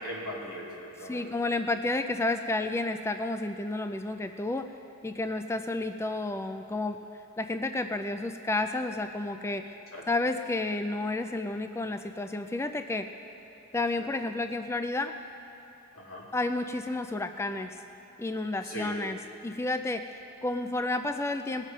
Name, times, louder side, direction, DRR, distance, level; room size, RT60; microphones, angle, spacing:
voice 1, 0.0-1.3 9.9-10.0 14.0-14.1 15.9-16.3 18.6-18.9, equal, 90° left, -4 dB, 2.7 m, -39 dB
voice 2, 1.1-4.7 5.0-7.0 7.4-9.8 10.1-13.1 13.7-15.1 16.3-17.8 18.2-19.2 19.4-21.7, left 2 dB, 10° left, 8 dB, 0.3 m, -31 dB
19.5 x 7.3 x 5.3 m, 2.9 s
head